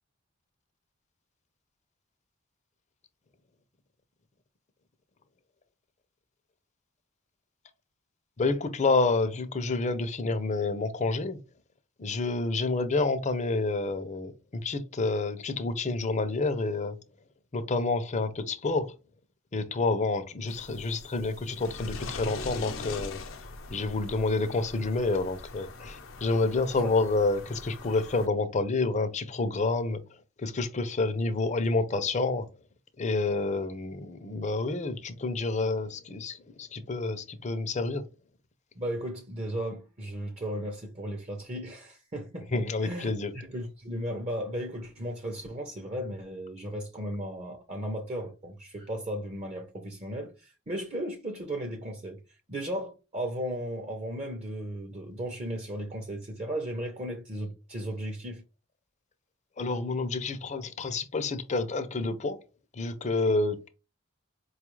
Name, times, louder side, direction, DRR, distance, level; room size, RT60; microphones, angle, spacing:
voice 1, 8.4-11.4 12.0-17.0 17.5-19.0 19.5-23.2 23.7-30.0 30.4-32.5 33.0-38.0 42.5-43.3 59.6-62.4 62.7-63.7, left 3 dB, 35° left, 0.5 m, -28 dB
sound 1, 20.5-28.3, left 3 dB, 85° left, 0.7 m, -42 dB
voice 2, 38.8-52.2 52.5-58.4, equal, 35° right, 0.6 m, -35 dB
4.5 x 2.3 x 3.1 m
head